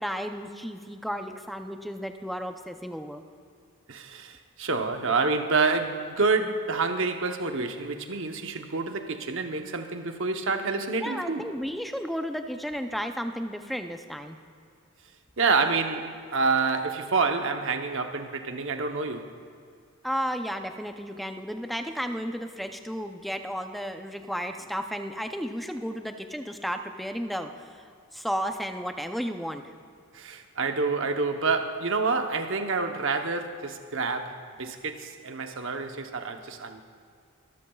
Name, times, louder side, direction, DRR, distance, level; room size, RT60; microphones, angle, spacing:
voice 1, 0.0-3.2 11.0-14.4 20.0-27.9 28.1-29.7, equal, ahead, 0.5 m, -33 dB
voice 2, 3.9-11.5 15.4-19.3 30.1-36.8, right 4 dB, 60° right, 0.9 m, -28 dB
25.5 x 13.0 x 2.3 m
head